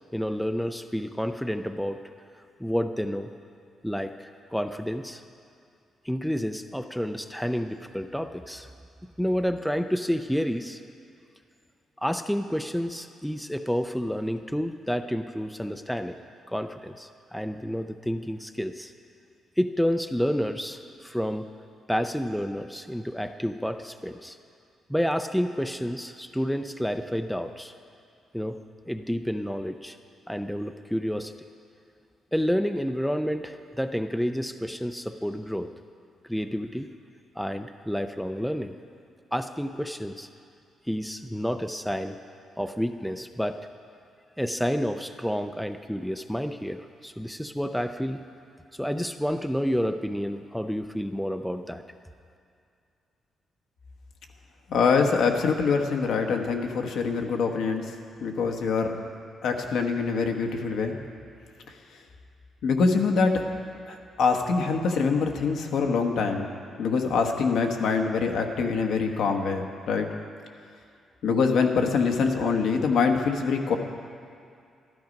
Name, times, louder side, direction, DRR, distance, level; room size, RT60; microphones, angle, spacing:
voice 1, 0.1-2.0 2.6-3.3 3.8-5.2 6.0-8.7 9.2-10.8 12.0-16.2 16.5-18.9 19.6-21.5 21.9-24.4 24.9-27.7 28.3-28.6 28.9-30.0 30.3-31.3 32.3-35.7 36.3-36.9 37.4-38.8 39.3-40.3 40.9-42.2 42.6-43.6 44.4-48.2 48.7-51.8, equal, ahead, 8 dB, 0.4 m, -29 dB
voice 2, 54.7-57.9 58.2-59.1 59.4-61.0 62.6-63.4 63.9-66.5 66.8-70.1 71.2-73.7, left 5 dB, 75° left, 3 dB, 1.2 m, -24 dB
13.0 x 12.5 x 5.3 m, 2.4 s
cardioid pair, 130°, 0 cm